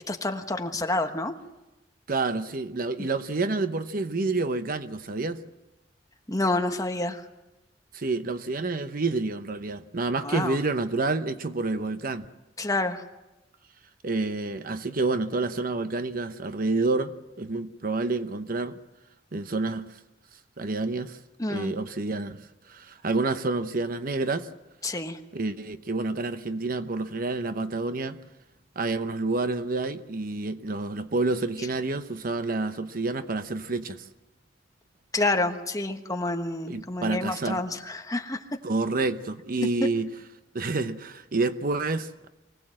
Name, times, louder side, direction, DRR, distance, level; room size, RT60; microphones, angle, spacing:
voice 1, 0.1-1.3 3.0-3.1 6.3-7.3 10.2-10.6 12.6-13.0 21.4-21.7 24.8-25.2 35.1-38.4, left 2 dB, 20° left, 1.3 m, -28 dB
voice 2, 2.1-5.4 7.9-12.3 14.0-18.8 19.3-19.9 20.6-21.2 21.5-22.4 22.7-24.5 25.3-28.2 28.8-34.0 36.7-37.6 38.6-40.1 40.5-42.3, right 3 dB, 50° right, 0.9 m, -28 dB
24.0 x 17.5 x 7.6 m
head